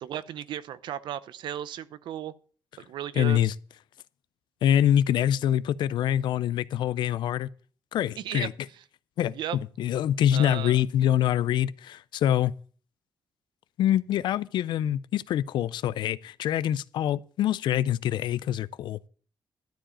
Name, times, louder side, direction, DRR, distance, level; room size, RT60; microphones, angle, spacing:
voice 1, 0.0-2.3 2.9-3.4 8.2-8.5 9.3-9.6 10.3-10.8, right 11 dB, 85° right, 0.7 m, -35 dB
voice 2, 3.2-3.5 4.6-7.5 7.9-8.5 9.2-9.4 9.8-12.5 13.8-19.0, left 11 dB, 90° left, 0.5 m, -25 dB
12.5 x 4.9 x 8.8 m
wide cardioid pair, 170°, 8 cm